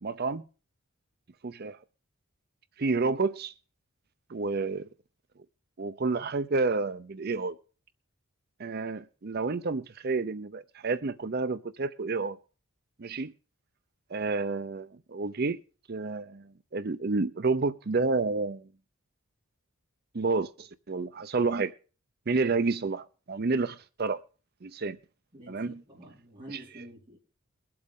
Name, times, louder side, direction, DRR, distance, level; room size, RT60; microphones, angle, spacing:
voice 1, 0.0-0.5 1.4-1.8 2.8-3.5 4.3-4.9 5.8-7.6 8.6-12.4 13.0-13.3 14.1-15.6 15.9-18.7 20.1-21.7 22.3-24.2 24.6-25.0 25.5-25.8 26.5-26.6, right 3 dB, 45° right, 0.6 m, -30 dB
voice 2, 25.3-27.2, right 1 dB, 20° right, 4.6 m, -47 dB
22.5 x 7.7 x 3.7 m
head